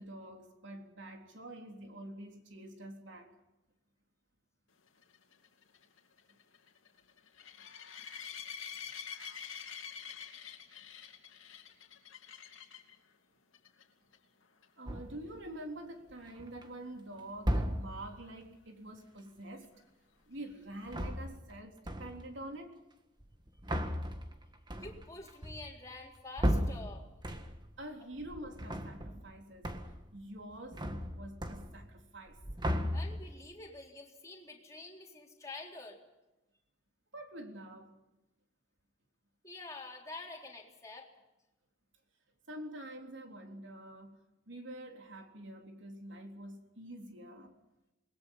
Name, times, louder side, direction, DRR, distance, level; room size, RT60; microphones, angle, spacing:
voice 1, 0.0-3.4 6.3-6.4 7.5-7.6 14.8-19.7 20.3-22.8 27.8-29.8 30.1-30.9 31.1-32.4 37.1-38.0 42.5-44.2 44.5-47.5, right 1 dB, 65° right, 3.7 m, -47 dB
sound 1, 5.0-12.9 13.5-13.8 14.1-14.2 14.6-14.7 18.3-18.4, left 7 dB, 80° left, 2.9 m, -47 dB
sound 2, 14.9-15.3 16.1-16.6 17.4-18.1 20.7-21.6 21.9-22.4 23.2-27.8 28.1-29.3 29.6-30.1 30.4-32.0 32.3-33.4, equal, 20° right, 1.7 m, -36 dB
voice 2, 24.8-27.1 32.9-36.0 39.4-41.1, left 3 dB, 15° left, 3.9 m, -47 dB
28.0 x 21.0 x 5.6 m
head